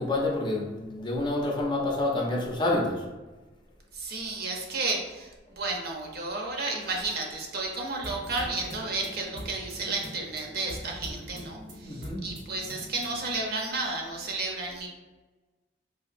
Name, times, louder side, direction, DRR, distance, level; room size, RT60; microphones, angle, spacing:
voice 1, 0.0-3.0 11.9-12.2, left 2 dB, 25° left, -1 dB, 0.5 m, -28 dB
voice 2, 3.9-14.9, right 3 dB, 55° right, 0 dB, 0.6 m, -32 dB
sound 1, 8.0-13.3, equal, 80° right, 0.9 m, -43 dB
4.0 x 2.7 x 2.5 m, 1.2 s
head